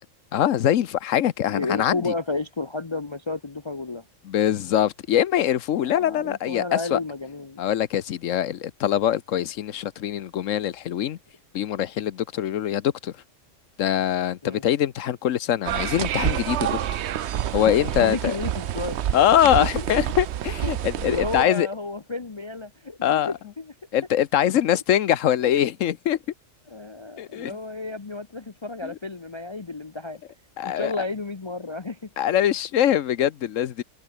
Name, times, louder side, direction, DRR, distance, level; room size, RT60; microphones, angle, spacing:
voice 1, 0.3-2.1 4.2-7.0 7.6-11.2 11.5-13.1 13.8-16.8 17.5-18.3 19.1-21.7 23.0-23.3 23.9-26.2 27.2-27.6 28.8-28.9 30.6-30.9 32.2-33.8, left 11 dB, 80° left, 1.2 m, -23 dB
voice 2, 1.5-4.1 5.7-7.6 14.4-14.6 17.6-19.0 19.6-19.7 20.6-20.7 21.0-23.7 26.7-30.2 30.6-32.1, left 3 dB, 25° left, 0.7 m, -32 dB
sound 1, 15.6-21.5, right 11 dB, 65° right, 0.9 m, -28 dB
omnidirectional pair, 1.3 m